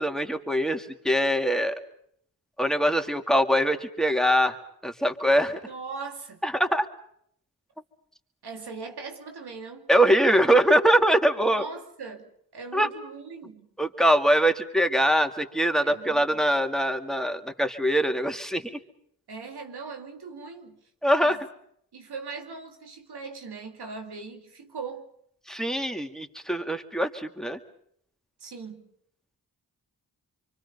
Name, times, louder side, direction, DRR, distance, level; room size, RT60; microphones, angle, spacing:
voice 1, 0.0-1.8 2.6-4.6 4.8-5.6 6.4-6.9 9.9-11.6 12.7-12.9 13.8-18.8 21.0-21.4 25.5-27.6, equal, ahead, 2.4 m, -23 dB
voice 2, 5.7-6.4 8.4-9.9 11.4-13.7 15.8-16.2 19.3-20.8 21.2-21.4 21.9-25.1 28.4-28.9, right 4 dB, 85° right, 2.6 m, -40 dB
27.0 x 24.5 x 5.5 m
cardioid pair, 45°, 38 cm